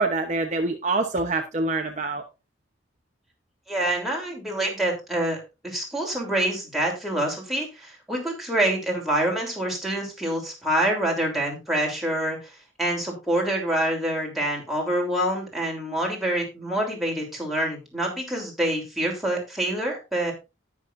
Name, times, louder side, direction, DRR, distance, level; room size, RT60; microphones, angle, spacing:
voice 1, 0.0-2.2, right 3 dB, 35° right, 3 dB, 0.9 m, -25 dB
voice 2, 3.7-20.3, right 1 dB, ahead, -2 dB, 3.2 m, -26 dB
19.0 x 6.3 x 2.6 m, 0.27 s
head